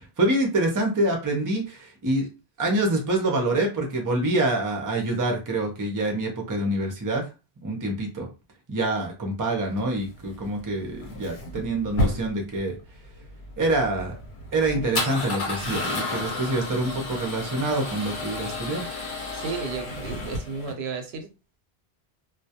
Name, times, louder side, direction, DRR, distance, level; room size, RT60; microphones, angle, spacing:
voice 1, 0.0-2.3 2.6-7.2 7.6-8.3 8.7-12.8 13.6-14.2 14.5-18.8, right 2 dB, 25° right, 0.4 m, -26 dB
Male speech man speaking / Car / Engine starting, 9.6-20.7, left 2 dB, 80° left, 1.1 m, -32 dB
voice 2, 19.3-21.3, right 5 dB, 90° right, 0.8 m, -33 dB
2.2 x 2.1 x 2.8 m
omnidirectional pair, 1.0 m